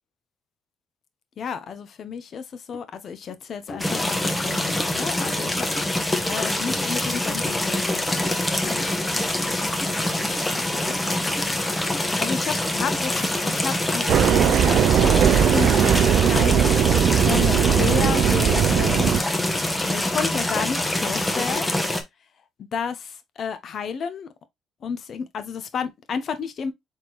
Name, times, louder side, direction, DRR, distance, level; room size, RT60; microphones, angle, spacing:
voice 1, 1.4-5.7 6.3-10.0 10.5-11.0 12.2-19.2 19.8-21.7 22.7-24.3 24.8-26.7, left 6 dB, 55° left, 0.8 m, -32 dB
sound 1, 2.7-2.8 3.3-3.4 3.7-4.5 4.8-4.9 5.2-6.4 6.7-7.4 7.8-8.0 8.2-8.5 8.8-8.9 9.4-10.0 10.4-10.5 10.9-11.0 11.4-11.6 11.9-12.1 12.5-12.6 12.9-13.2, left 1 dB, 40° left, 1.1 m, -41 dB
sound 2, 3.8-22.0, left 1 dB, 15° left, 1.0 m, -25 dB
sound 3, 14.1-19.2, right 9 dB, 65° right, 0.3 m, -19 dB
4.4 x 3.6 x 3.0 m
supercardioid pair, 80°, 0 cm